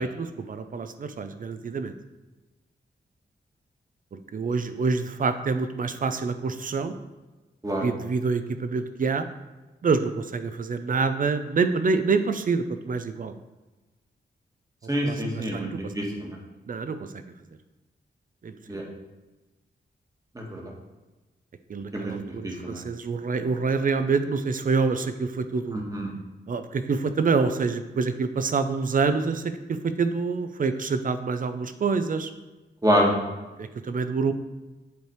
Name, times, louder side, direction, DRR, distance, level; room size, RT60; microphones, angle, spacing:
voice 1, 0.0-1.9 4.1-7.0 7.8-9.3 9.8-13.3 15.0-15.9 16.7-17.2 18.4-18.8 21.7-25.8 26.5-32.3 33.6-34.3, right 4 dB, 45° right, 10 dB, 0.5 m, -27 dB
voice 2, 14.9-16.4 18.7-18.8 20.3-20.7 21.9-22.1 22.4-22.8 25.7-26.1 32.8-33.1, equal, 20° right, -1 dB, 1.5 m, -26 dB
8.0 x 3.4 x 4.5 m, 1.1 s
wide cardioid pair, 85°, 19 cm